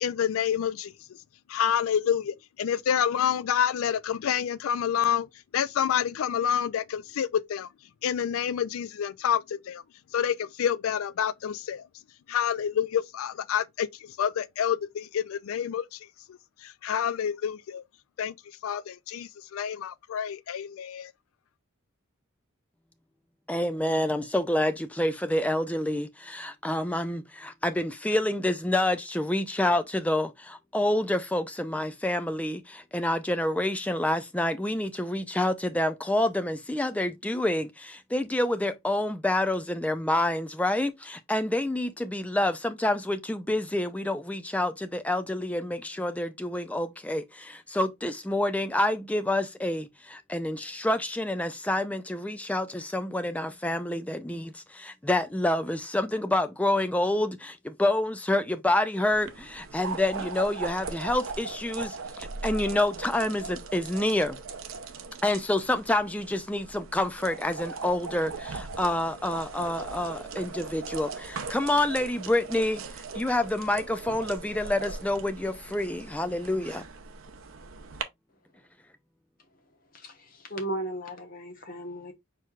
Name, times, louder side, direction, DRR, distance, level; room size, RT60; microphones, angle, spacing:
voice 1, 0.0-0.9 1.5-5.3 5.5-7.7 8.0-9.8 10.1-11.9 12.3-13.9 14.2-16.0 16.3-17.8 18.2-18.3 18.6-21.1, left 8 dB, 80° left, 0.3 m, -28 dB
voice 2, 23.5-64.4 65.2-76.9, left 1 dB, 5° left, 0.3 m, -28 dB
sound 1, 59.1-78.0, right 4 dB, 75° right, 0.7 m, -39 dB
voice 3, 79.9-82.1, right 1 dB, 40° left, 1.1 m, -36 dB
4.5 x 4.4 x 2.4 m
head